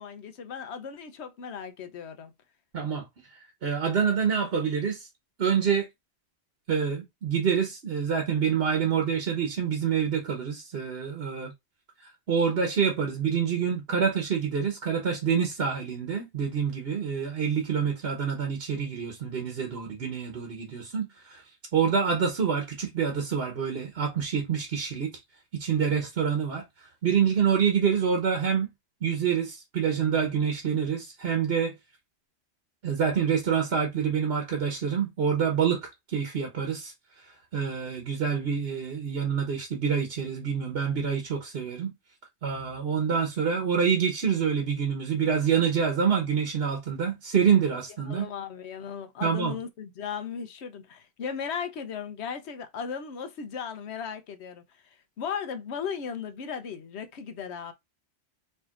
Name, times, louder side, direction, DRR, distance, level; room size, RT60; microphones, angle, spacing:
voice 1, 0.0-2.3 48.1-57.7, left 7 dB, 85° left, 1.0 m, -36 dB
voice 2, 2.7-3.0 3.3-5.1 5.4-5.9 6.7-11.5 12.0-21.4 21.7-25.1 25.6-28.7 29.0-31.7 32.8-36.9 37.2-41.9 42.4-48.3 49.2-49.6, right 7 dB, 65° right, 1.2 m, -27 dB
4.4 x 3.3 x 2.4 m
omnidirectional pair, 1.1 m